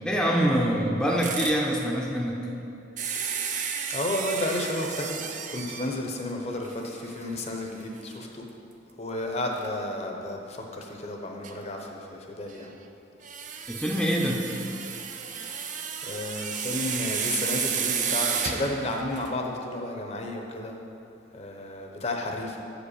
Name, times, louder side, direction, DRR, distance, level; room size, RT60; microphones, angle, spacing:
voice 1, 0.0-2.5 13.7-14.4, equal, 5° left, -2 dB, 0.6 m, -25 dB
sound 1, 1.2-1.6 3.0-6.0 6.7-6.8 7.2-7.3 9.6-9.7 11.4-11.5 13.2-19.4, right 7 dB, 45° right, 0.5 m, -32 dB
voice 2, 3.9-5.2 5.5-8.5 9.0-12.7 15.4-15.7 16.0-20.8 21.3-22.6, left 1 dB, 35° left, 2 dB, 0.8 m, -32 dB
7.8 x 5.1 x 6.6 m, 2.9 s
head